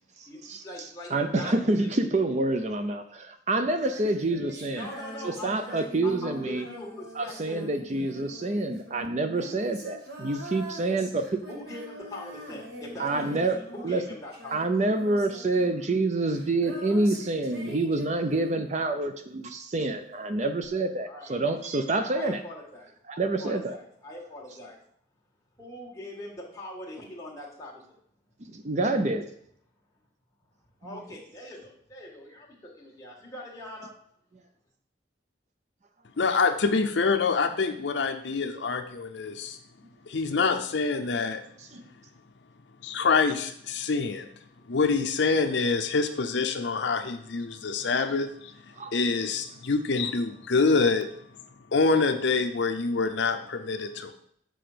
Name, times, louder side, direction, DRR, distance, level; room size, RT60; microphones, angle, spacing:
voice 1, 0.3-1.1 1.4-1.9 4.7-7.6 11.5-14.6 21.1-21.4 21.9-24.8 25.6-27.8 30.8-33.9, left 1 dB, 20° left, -3 dB, 1.9 m, -42 dB
voice 2, 1.1-4.9 5.2-6.6 7.2-11.4 13.0-13.6 13.8-14.0 14.5-22.4 23.1-23.8 28.5-29.2 41.6-41.8 48.8-48.9, right 2 dB, 35° right, 7 dB, 0.5 m, -27 dB
Female singing, 3.7-19.1 20.6-20.7, right 1 dB, 55° right, 1.7 m, -44 dB
voice 3, 36.2-39.6 40.1-41.4 42.8-44.3 44.7-48.5 48.9-51.1 51.7-54.1, left 4 dB, 70° left, 6 dB, 0.6 m, -26 dB
7.7 x 5.1 x 5.0 m, 0.68 s
head